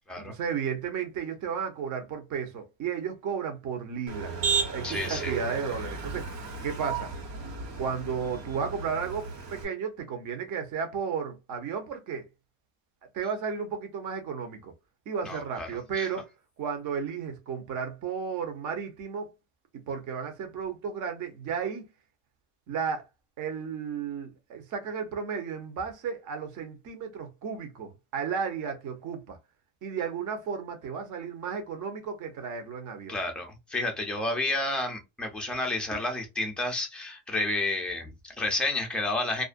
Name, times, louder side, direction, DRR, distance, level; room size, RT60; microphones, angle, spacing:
voice 1, 0.2-4.3 4.7-7.1 7.8-12.3 13.1-14.7 15.1-16.3 16.6-19.3 19.9-21.9 22.7-23.0 23.4-29.4 29.8-33.2, right 6 dB, 40° right, 0.7 m, -33 dB
Motor vehicle (road), 4.1-9.6, right 5 dB, 70° right, 1.2 m, -33 dB
voice 2, 4.8-5.4 15.2-15.7 15.9-16.1 33.1-39.4, left 2 dB, ahead, 0.4 m, -30 dB
2.4 x 2.1 x 2.4 m
cardioid pair, 140°, 47 cm